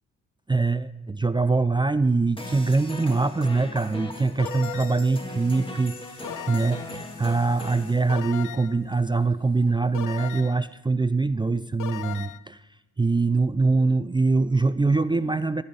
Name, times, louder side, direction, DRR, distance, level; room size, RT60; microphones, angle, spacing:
voice 1, 0.5-12.7 13.0-15.6, right 3 dB, 15° right, 13 dB, 0.4 m, -23 dB
sound 1, 2.4-7.9, left 1 dB, 15° left, 1.9 m, -38 dB
sound 2, 3.6-3.8 4.3-10.6, left 3 dB, 45° left, 2.6 m, -56 dB
sound 3, 4.4-5.1 6.2-7.0 8.1-8.8 9.9-10.7 11.8-12.4, left 12 dB, 75° left, 0.6 m, -37 dB
14.5 x 5.6 x 8.8 m, 1.0 s
cardioid pair, 60°, 32 cm